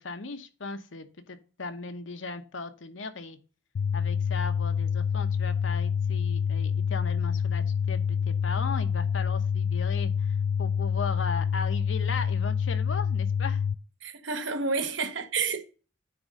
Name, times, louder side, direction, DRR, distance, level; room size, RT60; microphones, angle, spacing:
voice 1, 0.0-3.4 3.9-13.6, left 4 dB, 90° left, 1.1 m, -37 dB
sound 1, 3.7-13.7, left 7 dB, 60° left, 0.3 m, -27 dB
voice 2, 14.0-15.6, right 4 dB, 75° right, 1.2 m, -30 dB
9.5 x 3.7 x 5.1 m
head